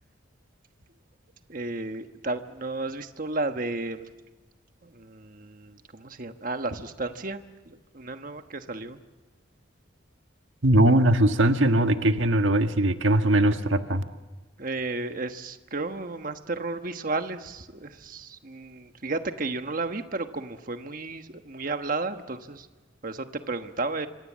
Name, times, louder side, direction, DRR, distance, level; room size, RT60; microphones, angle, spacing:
voice 1, 1.5-4.1 4.8-9.0 14.6-22.7 23.0-24.1, right 3 dB, 45° right, 8 dB, 1.2 m, -33 dB
voice 2, 10.6-14.0, right 1 dB, 80° right, 7 dB, 1.5 m, -20 dB
26.5 x 25.5 x 7.4 m, 1.2 s
head